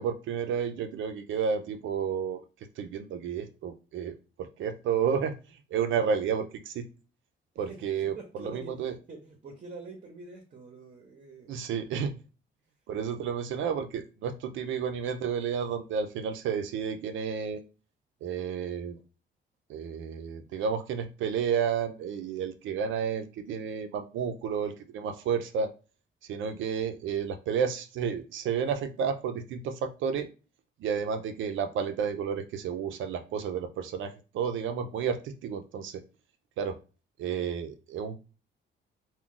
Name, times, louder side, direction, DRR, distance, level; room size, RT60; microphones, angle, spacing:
voice 1, 0.0-2.4 2.8-4.2 4.6-5.4 5.7-6.9 7.6-9.0 11.5-12.1 12.9-17.6 18.2-19.0 19.7-25.7 26.2-30.3 30.8-36.0 36.6-36.8 37.2-38.2, right 7 dB, 75° right, 7 dB, 0.5 m, -31 dB
voice 2, 7.7-11.6, right 3 dB, 40° right, 2 dB, 0.7 m, -46 dB
2.3 x 2.2 x 3.7 m, 0.34 s
cardioid pair, 90°, 20 cm